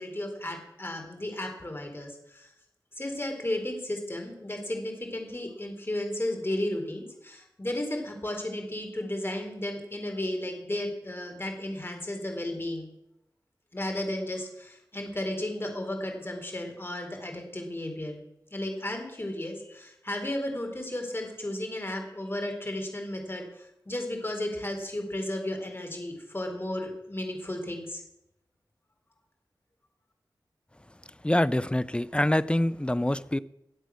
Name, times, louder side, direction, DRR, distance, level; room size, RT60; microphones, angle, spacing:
voice 1, 0.0-2.5 3.0-12.9 13.7-18.2 18.5-28.0, left 1 dB, 30° left, 3 dB, 4.1 m, -34 dB
voice 2, 31.2-33.4, left 1 dB, 15° left, 16 dB, 0.5 m, -25 dB
22.0 x 8.2 x 6.4 m, 0.82 s
wide cardioid pair, 70°, 8 cm